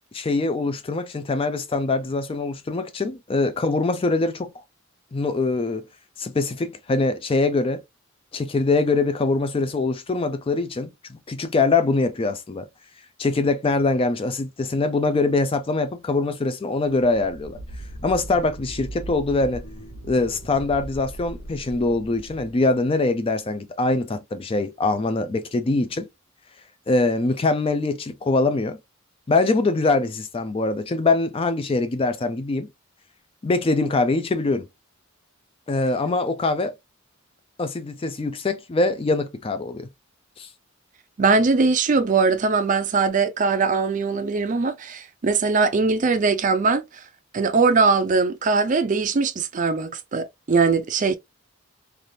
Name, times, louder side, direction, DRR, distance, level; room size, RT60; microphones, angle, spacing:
voice 1, 0.1-4.5 5.1-5.8 6.2-7.8 8.3-12.7 13.2-17.6 18.0-19.6 20.0-26.1 26.9-28.8 29.3-32.7 33.4-34.7 35.7-36.7 37.6-39.9 40.4-40.5, left 3 dB, 25° left, 0.4 m, -23 dB
sound 1, 17.0-23.3, right 1 dB, 90° left, 1.2 m, -39 dB
voice 2, 41.2-46.8 47.3-51.2, right 4 dB, 35° right, 0.4 m, -21 dB
3.3 x 2.4 x 2.6 m
head